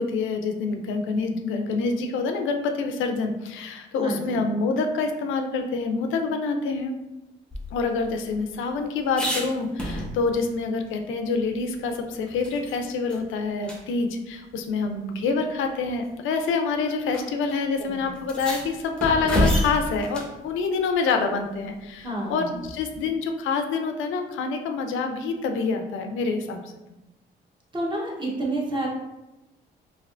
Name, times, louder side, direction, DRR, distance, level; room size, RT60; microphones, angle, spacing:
voice 1, 0.0-6.9 7.7-26.6, left 4 dB, 80° left, 5 dB, 0.4 m, -26 dB
voice 2, 4.0-4.4 17.9-18.0 22.0-22.5 27.7-28.9, right 1 dB, 25° right, -3 dB, 1.0 m, -29 dB
sound 1, 7.5-10.5 10.9-11.0 11.3-12.8 13.1-13.2 13.6-13.8 14.8-14.9 15.8-16.1 17.1-17.2 17.5-17.6 18.2-20.4 22.6-23.1, left 1 dB, 5° left, 0.7 m, -29 dB
3.3 x 2.5 x 2.5 m, 0.98 s
cardioid pair, 90°, 20 cm